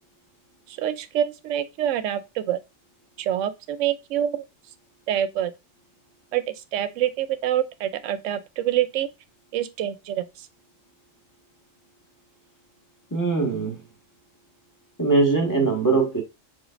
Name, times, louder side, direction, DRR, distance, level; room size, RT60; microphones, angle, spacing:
voice 1, 0.7-2.6 3.2-4.4 5.1-5.5 6.3-9.1 9.5-10.5, right 11 dB, 75° right, 0.9 m, -26 dB
voice 2, 13.1-13.8 15.0-16.2, right 3 dB, 15° left, 1.4 m, -21 dB
5.0 x 4.0 x 2.5 m
omnidirectional pair, 1.3 m